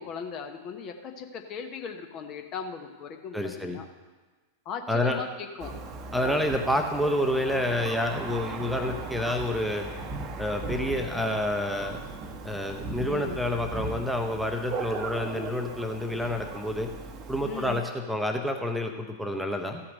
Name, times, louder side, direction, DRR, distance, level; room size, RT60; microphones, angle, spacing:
voice 1, 0.0-3.9 4.6-5.7 13.0-13.4 17.4-17.8, left 6 dB, 35° left, 5 dB, 1.0 m, -38 dB
voice 2, 3.3-3.8 4.9-5.2 6.1-9.9 10.4-12.0 12.4-16.9 17.3-19.8, left 1 dB, ahead, 4 dB, 0.9 m, -28 dB
Thunder, 5.6-17.8, right 3 dB, 30° right, 1.0 m, -38 dB
15.0 x 5.8 x 6.4 m, 1.3 s
figure-of-eight pair, 90°, 0 cm